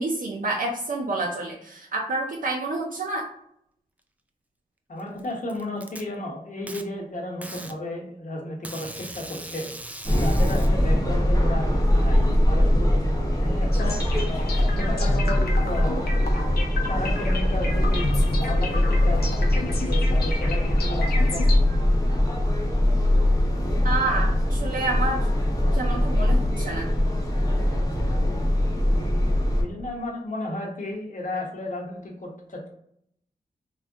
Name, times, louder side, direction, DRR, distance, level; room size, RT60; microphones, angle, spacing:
voice 1, 0.0-3.3 23.8-25.2 25.7-26.9, right 2 dB, 60° right, -2 dB, 0.5 m, -28 dB
voice 2, 4.9-9.7 10.2-14.0 14.7-16.0 16.9-21.4 29.6-32.7, left 1 dB, 55° left, -1 dB, 0.9 m, -33 dB
Packing tape duct tape, 5.0-6.0 6.7-6.8 7.4-7.8 8.6-10.7, right 1 dB, 10° right, 0.3 m, -39 dB
sound 1, 10.1-29.6, left 1 dB, 20° left, 0.8 m, -22 dB
sound 2, 13.7-21.6, left 3 dB, 85° left, 0.6 m, -33 dB
2.4 x 2.1 x 3.6 m, 0.70 s
cardioid pair, 60°, 16 cm